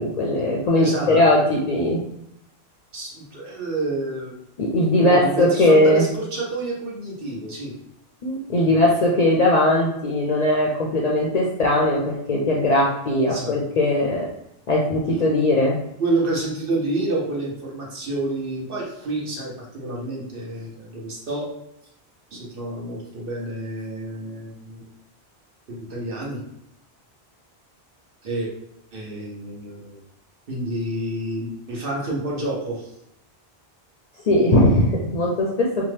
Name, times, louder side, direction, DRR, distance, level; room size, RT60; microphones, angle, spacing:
voice 1, 0.0-2.0 4.6-6.0 8.2-14.3 14.7-15.8 34.2-35.8, left 1 dB, 55° left, -2 dB, 0.5 m, -19 dB
voice 2, 0.8-1.3 2.9-4.3 5.0-7.7 8.6-8.7 13.2-13.6 16.0-21.5 22.3-24.9 25.7-26.4 28.2-28.5 28.9-30.0 30.5-32.9, right 2 dB, 60° right, -3 dB, 1.0 m, -28 dB
2.8 x 2.2 x 3.2 m, 0.78 s
omnidirectional pair, 1.1 m